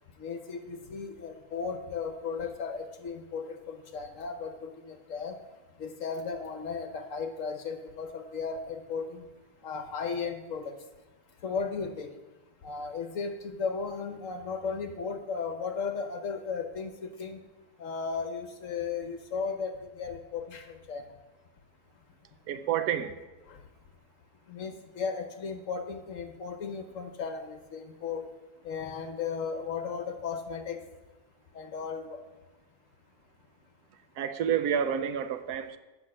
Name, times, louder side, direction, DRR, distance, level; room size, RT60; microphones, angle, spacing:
voice 1, 0.2-5.4 5.8-9.3 9.6-10.8 11.4-12.2 12.6-17.4 17.8-21.0 23.5-23.6 24.5-28.3 28.6-30.8 31.5-32.2, left 5 dB, 60° left, 7 dB, 1.0 m, -35 dB
voice 2, 22.5-23.2 34.2-35.8, right 8 dB, 75° right, 10 dB, 1.1 m, -29 dB
8.6 x 5.7 x 7.4 m, 1.1 s
omnidirectional pair, 1.8 m